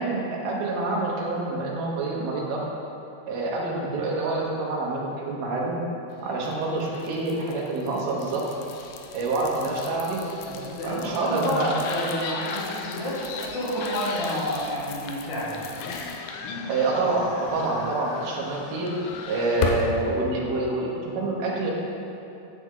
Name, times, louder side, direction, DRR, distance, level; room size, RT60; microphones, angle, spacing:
voice 1, 0.0-2.7 3.3-5.8 6.2-8.5 9.1-11.8 16.7-19.0 19.3-21.7, right 2 dB, 70° right, -3 dB, 2.8 m, -27 dB
sound 1, 6.4-20.0, left 5 dB, 85° left, 2.1 m, -36 dB
voice 2, 10.6-15.7, left 1 dB, 40° left, -8 dB, 1.8 m, -30 dB
9.9 x 7.1 x 3.7 m, 2.8 s
omnidirectional pair, 4.8 m